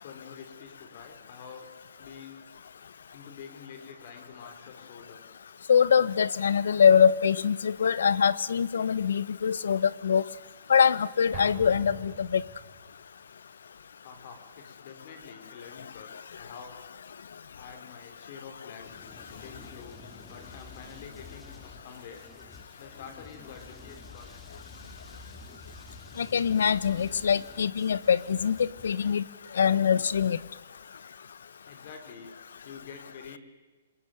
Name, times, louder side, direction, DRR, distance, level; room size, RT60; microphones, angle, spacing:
voice 1, 0.0-1.7 2.0-2.5 3.1-5.2 14.0-16.8 17.5-18.9 19.4-22.2 22.8-24.3 31.6-32.3 32.6-33.4, left 6 dB, 45° left, 7 dB, 4.3 m, -47 dB
voice 2, 5.7-10.2 10.7-12.4 26.2-29.2 29.5-30.4, left 7 dB, 80° left, 19 dB, 1.1 m, -23 dB
Explosion, 11.3-12.9, right 5 dB, 20° right, 5.2 m, -43 dB
sound 1, 18.8-29.1, left 3 dB, 10° left, 2.7 m, -50 dB
28.0 x 20.0 x 9.3 m, 1.3 s
hypercardioid pair, 155°, 0 cm